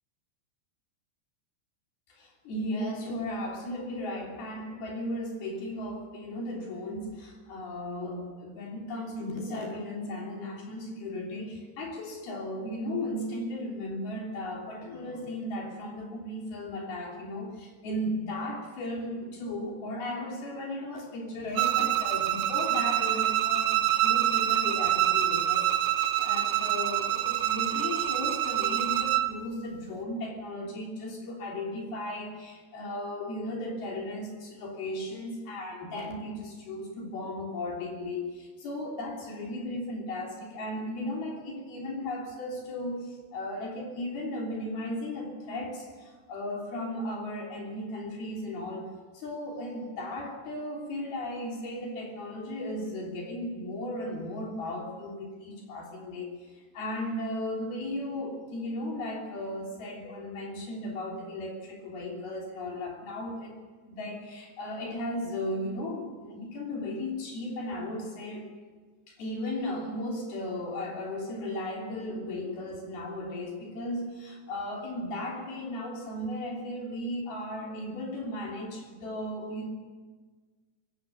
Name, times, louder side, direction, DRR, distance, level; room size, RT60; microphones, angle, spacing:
voice 1, 2.1-48.9 49.1-63.6 63.9-68.5 69.1-79.7, left 1 dB, 65° left, -1 dB, 5.1 m, -36 dB
Bowed string instrument, 21.5-29.3, right 12 dB, 75° right, 2.5 m, -26 dB
22.5 x 17.0 x 8.2 m, 1.5 s
omnidirectional pair, 4.8 m